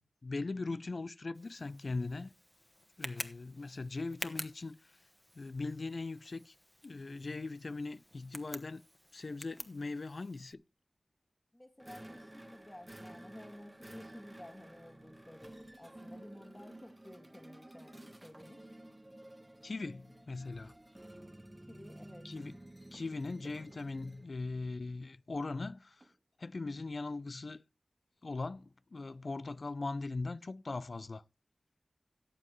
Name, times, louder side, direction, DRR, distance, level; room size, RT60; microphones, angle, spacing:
voice 1, 0.0-2.3 3.0-5.0 5.3-6.5 6.8-8.8 9.1-10.6 19.6-20.7 22.2-22.6 22.9-26.1 26.4-27.6 28.2-31.2, left 3 dB, 65° left, 0.5 m, -40 dB
Tick, 1.3-10.5, equal, 10° left, 1.3 m, -49 dB
voice 2, 11.5-18.7 21.7-22.3, left 1 dB, 25° left, 2.1 m, -53 dB
sound 1, 11.8-24.3, right 1 dB, 20° right, 1.3 m, -53 dB
sound 2, 22.9-27.3 28.1-28.2 28.4-28.6 29.1-29.2, right 2 dB, 40° right, 1.4 m, -65 dB
17.5 x 7.7 x 3.2 m
cardioid pair, 40°, 0 cm